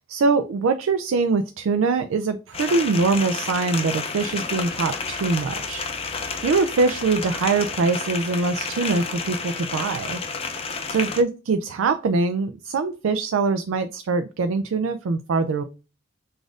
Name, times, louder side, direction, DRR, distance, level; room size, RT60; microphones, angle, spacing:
voice 1, 0.1-5.8 6.4-10.2 10.9-15.6, right 4 dB, 90° right, 9 dB, 0.4 m, -23 dB
sound 1, 2.5-11.2, left 4 dB, 30° left, 0.5 m, -30 dB
4.0 x 2.5 x 4.7 m, 0.32 s
head